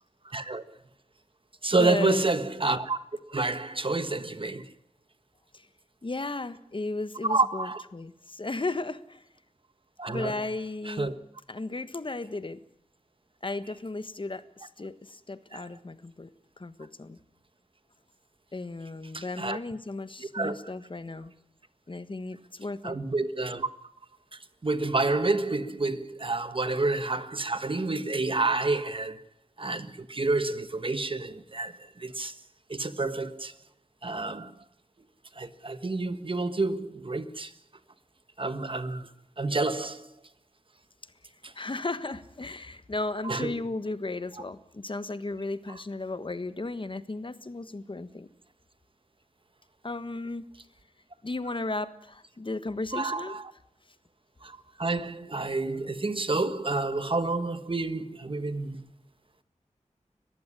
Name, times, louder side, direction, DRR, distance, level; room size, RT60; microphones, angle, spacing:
voice 1, 0.2-0.6 1.6-3.0 3.3-4.7 7.2-7.8 10.0-10.3 10.8-11.1 15.5-15.7 19.1-19.6 20.2-20.6 22.8-23.9 24.3-29.2 29.6-32.4 32.7-33.5 34.0-34.5 35.3-37.5 38.4-40.1 41.4-41.5 43.2-43.5 52.9-53.4 54.4-58.9, right 3 dB, 45° right, 1.3 m, -29 dB
voice 2, 1.8-2.2 5.5-5.7 6.0-9.2 10.1-11.1 11.5-12.6 13.4-17.2 18.5-21.3 21.9-23.0 41.5-48.3 49.8-50.4 51.2-53.4, left 2 dB, 45° left, 1.4 m, -35 dB
21.5 x 15.0 x 9.9 m
wide cardioid pair, 75°, 13 cm